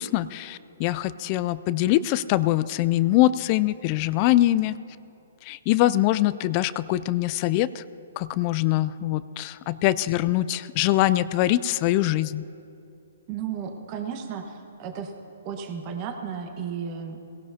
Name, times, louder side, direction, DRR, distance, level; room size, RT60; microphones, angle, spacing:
voice 1, 0.0-4.8 5.4-7.8 8.2-12.4, left 15 dB, 35° left, 16 dB, 0.3 m, -23 dB
voice 2, 13.3-15.1 15.4-17.2, right 7 dB, 35° right, 4 dB, 1.3 m, -34 dB
18.5 x 17.0 x 2.8 m, 2.7 s
hypercardioid pair, 140°, 0 cm